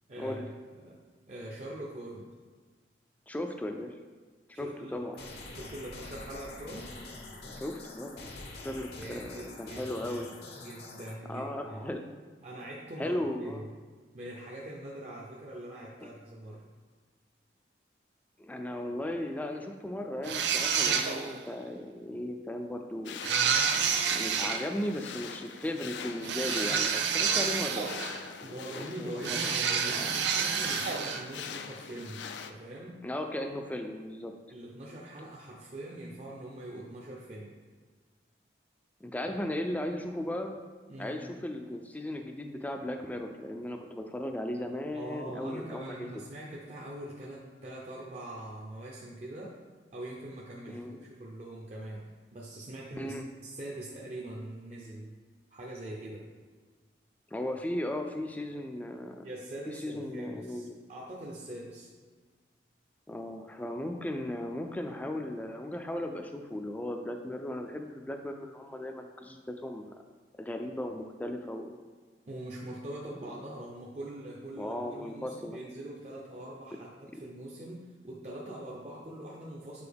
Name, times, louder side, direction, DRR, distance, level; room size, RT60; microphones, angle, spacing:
voice 1, 0.1-0.5 0.7-1.0 1.3-2.3 4.5-5.0 5.5-6.9 8.7-10.2 10.6-11.9 12.4-13.7 14.1-16.7 28.4-33.0 34.5-37.5 40.9-41.2 44.9-49.6 49.9-52.1 52.3-53.1 53.4-55.1 55.5-56.3 59.2-61.9 72.2-79.9, right 1 dB, 40° right, -3 dB, 0.6 m, -43 dB
voice 2, 3.3-3.9 4.6-5.2 7.5-8.3 8.6-10.3 11.3-12.0 13.0-13.6 16.0-16.1 18.4-23.2 24.1-27.9 28.4-29.5 29.9-30.1 33.0-34.3 39.0-40.6 41.0-46.0 50.7-51.0 53.0-53.2 57.3-59.3 59.7-60.8 63.1-70.0 70.4-71.8 74.6-75.6 77.1-77.2, left 1 dB, 10° left, 5 dB, 0.3 m, -36 dB
sound 1, 5.1-11.1, left 2 dB, 65° left, 0.7 m, -45 dB
sound 2, 20.2-21.4 23.2-24.6 26.2-28.3 29.2-31.3, right 6 dB, 80° right, 0.5 m, -29 dB
sound 3, 23.0-32.5, left 6 dB, 90° left, 0.4 m, -43 dB
6.9 x 4.2 x 3.4 m, 1.5 s
head